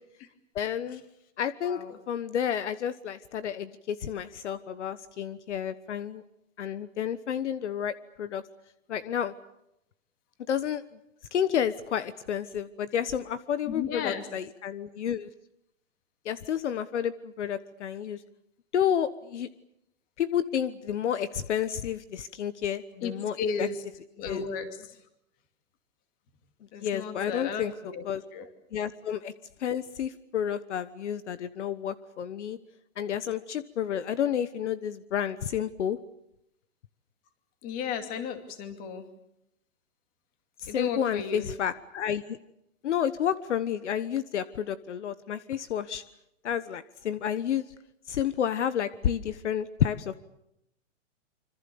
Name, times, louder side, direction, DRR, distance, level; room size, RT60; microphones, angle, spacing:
voice 1, 0.5-1.0 1.4-6.2 6.6-8.4 8.9-9.3 10.5-10.8 11.3-15.3 16.2-18.2 18.7-19.5 20.2-23.7 24.3-24.4 26.8-27.7 28.0-28.2 28.7-29.3 29.6-32.6 33.0-36.0 40.6-42.4 42.8-46.0 46.4-47.7 48.1-50.1, left 9 dB, 60° left, 14 dB, 1.3 m, -30 dB
voice 2, 13.7-14.3 23.0-23.8 24.2-25.0 26.7-28.0 28.3-28.5 37.6-39.1 40.7-41.5, left 6 dB, 20° left, 8 dB, 2.6 m, -34 dB
26.5 x 25.5 x 7.0 m, 0.83 s
hypercardioid pair, 170°, 39 cm